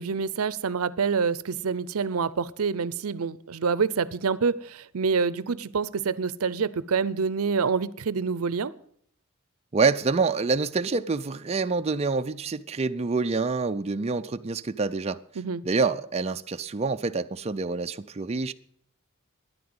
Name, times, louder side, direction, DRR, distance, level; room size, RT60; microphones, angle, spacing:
voice 1, 0.0-8.7 15.4-15.6, right 5 dB, 80° right, 0.6 m, -27 dB
voice 2, 9.7-15.2 15.6-18.5, right 4 dB, 30° right, 0.5 m, -26 dB
13.5 x 10.5 x 7.8 m
head